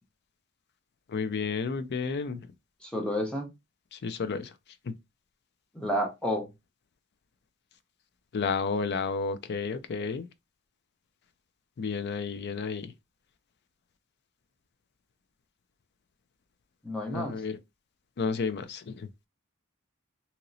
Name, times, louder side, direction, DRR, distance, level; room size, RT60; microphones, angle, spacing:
voice 1, 1.1-2.4 3.9-4.5 8.3-10.3 11.8-12.9 17.1-17.6 18.2-19.1, left 5 dB, 50° left, 0.4 m, -31 dB
voice 2, 2.8-3.5 5.7-6.5 16.8-17.3, equal, 5° left, 0.8 m, -30 dB
2.9 x 2.9 x 2.6 m
head